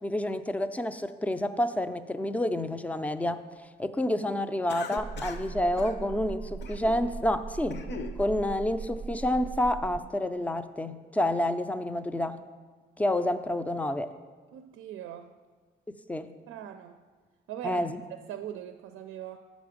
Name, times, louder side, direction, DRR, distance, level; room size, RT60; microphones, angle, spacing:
voice 1, 0.0-3.4 3.8-7.8 8.2-12.4 13.0-14.1 15.9-16.3 17.6-18.0, left 1 dB, 5° left, 11 dB, 0.4 m, -29 dB
Cough, 4.7-5.5 5.8-6.0 6.6-7.0 7.5-8.2, left 4 dB, 60° left, 0.7 m, -40 dB
sound 1, 5.0-10.0, right 5 dB, 25° right, 0.7 m, -39 dB
voice 2, 14.5-15.3 16.5-17.0 17.5-17.8 18.3-19.4, right 10 dB, 80° right, 7 dB, 0.4 m, -40 dB
7.5 x 6.2 x 5.1 m, 1.4 s
cardioid pair, 90°, 20 cm